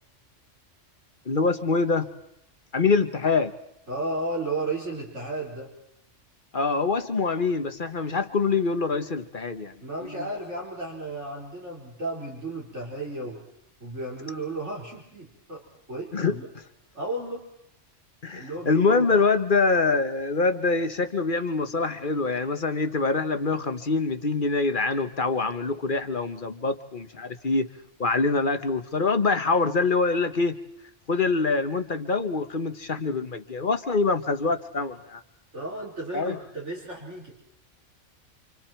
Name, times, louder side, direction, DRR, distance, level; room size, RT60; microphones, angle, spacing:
voice 1, 1.3-2.1 2.7-3.5 6.5-9.7 10.2-10.3 16.1-16.4 18.2-27.7 28.0-30.6 31.1-35.2 36.1-36.4, left 4 dB, 45° left, 10 dB, 1.3 m, -25 dB
voice 2, 3.9-5.7 9.8-13.4 13.8-15.6 15.9-16.5 16.9-17.4 18.3-19.2 35.5-37.3, right 2 dB, 70° right, -3 dB, 5.0 m, -33 dB
29.5 x 26.5 x 4.5 m, 0.76 s
omnidirectional pair, 1.3 m